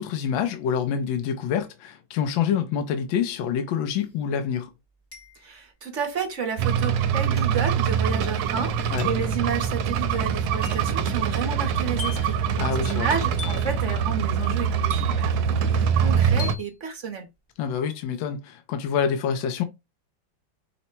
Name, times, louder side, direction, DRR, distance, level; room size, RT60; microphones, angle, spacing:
voice 1, 0.0-4.7 8.9-9.1 12.6-13.1 17.6-19.6, left 7 dB, 80° left, 1.4 m, -26 dB
sound 1, 3.9-4.0 5.1-5.7 7.4-7.7 9.0-9.3 10.6-11.0 12.0-12.4 13.4-13.8 14.9-15.4 16.4-16.7, left 4 dB, 15° left, 0.6 m, -39 dB
voice 2, 5.4-17.3, right 6 dB, 55° right, 0.9 m, -31 dB
sound 2, 6.6-16.5, right 7 dB, 75° right, 1.2 m, -24 dB
5.6 x 2.1 x 4.3 m
omnidirectional pair, 2.1 m